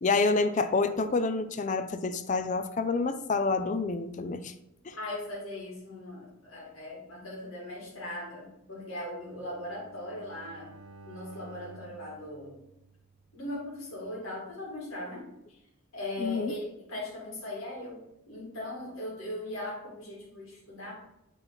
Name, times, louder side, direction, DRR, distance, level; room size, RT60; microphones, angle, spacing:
voice 1, 0.0-4.5 4.9-5.0 16.2-16.5, left 3 dB, 35° left, 10 dB, 0.4 m, -28 dB
voice 2, 4.9-10.7 11.0-12.6 13.3-15.6 15.9-20.9, left 1 dB, 70° left, -5 dB, 2.4 m, -39 dB
Bowed string instrument, 9.2-13.4, right 3 dB, 85° right, 0.8 m, -52 dB
7.0 x 4.1 x 4.0 m, 0.83 s
head